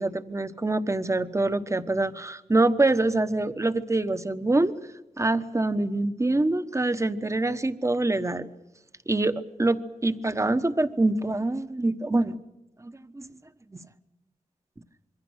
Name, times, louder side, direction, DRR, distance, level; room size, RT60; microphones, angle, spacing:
voice 1, 0.0-4.7 5.2-8.5 9.1-12.4 12.8-13.3 13.7-13.8, right 2 dB, 20° right, 11 dB, 1.2 m, -25 dB
26.0 x 23.0 x 6.5 m, 0.99 s
wide cardioid pair, 90°, 13 cm